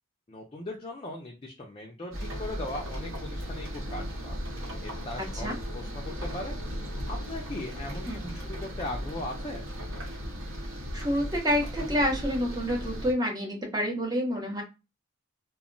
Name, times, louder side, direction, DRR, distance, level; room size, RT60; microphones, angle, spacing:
voice 1, 0.3-4.4 4.8-6.6 7.1-9.6, left 1 dB, 25° left, -1 dB, 0.4 m, -39 dB
sound 1, 2.1-13.1, equal, 65° right, 1.0 m, -36 dB
voice 2, 10.9-14.6, equal, 20° right, 1 dB, 0.7 m, -28 dB
2.2 x 2.0 x 3.7 m, 0.27 s
head